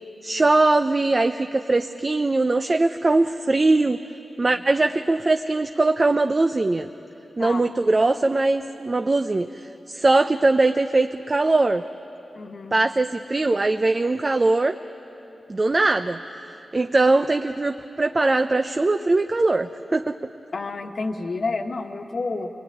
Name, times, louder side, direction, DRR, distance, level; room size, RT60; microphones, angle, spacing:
voice 1, 0.2-4.0 4.4-6.9 7.4-11.8 12.7-14.8 15.5-16.2 16.7-20.2, right 2 dB, 30° right, 7 dB, 0.6 m, -21 dB
voice 2, 12.3-12.8 20.5-22.5, left 3 dB, 55° left, 5 dB, 1.5 m, -29 dB
26.0 x 21.5 x 10.0 m, 2.9 s
wide cardioid pair, 120°, 0 cm